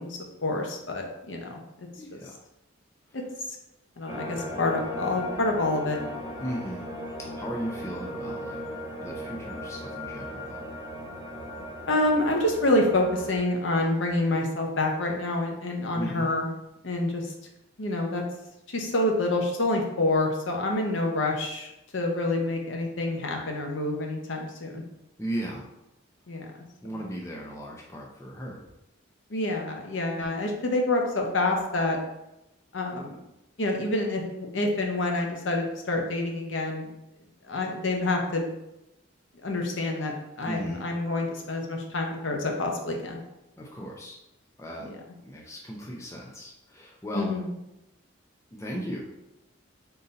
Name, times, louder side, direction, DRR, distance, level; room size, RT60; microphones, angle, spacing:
voice 1, 0.0-2.2 4.0-6.0 11.9-16.5 16.8-17.3 17.8-18.2 18.7-24.8 26.3-26.5 29.3-32.0 32.7-33.2 33.6-36.9 37.5-38.5 39.4-43.2 47.1-47.5, left 2 dB, 65° left, 1 dB, 0.7 m, -27 dB
voice 2, 2.0-2.4 3.1-3.2 6.4-6.9 7.2-8.6 9.0-10.7 15.9-16.3 25.2-25.7 26.8-28.6 40.4-40.9 43.6-44.2 44.6-44.9 45.2-47.3 48.5-49.1, equal, 15° left, -2 dB, 0.5 m, -37 dB
sound 1, 4.1-13.4, equal, 30° left, 1.1 m, -37 dB
3.9 x 2.7 x 3.9 m, 0.90 s
head